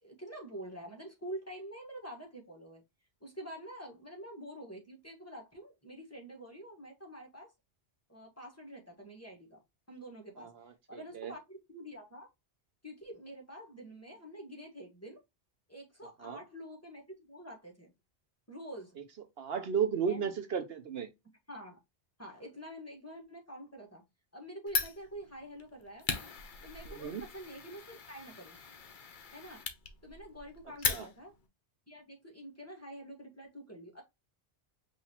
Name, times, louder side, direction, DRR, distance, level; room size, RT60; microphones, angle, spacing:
voice 1, 0.0-2.8 3.2-7.5 8.1-9.6 9.9-10.5 10.9-12.3 12.8-15.2 15.7-17.9 18.5-19.0 20.1-20.3 21.5-21.8 22.2-24.0 24.3-26.1 26.6-28.6 29.3-29.6 30.0-31.3 31.9-34.0, right 1 dB, 15° left, 1.3 m, -47 dB
voice 2, 10.4-10.7 11.1-11.3 16.2-16.4 19.4-21.1 26.9-27.2 30.9-31.1, right 7 dB, 65° right, 0.9 m, -34 dB
Fire, 24.7-31.5, left 5 dB, 50° left, 0.9 m, -39 dB
5.6 x 2.7 x 2.9 m
omnidirectional pair, 1.1 m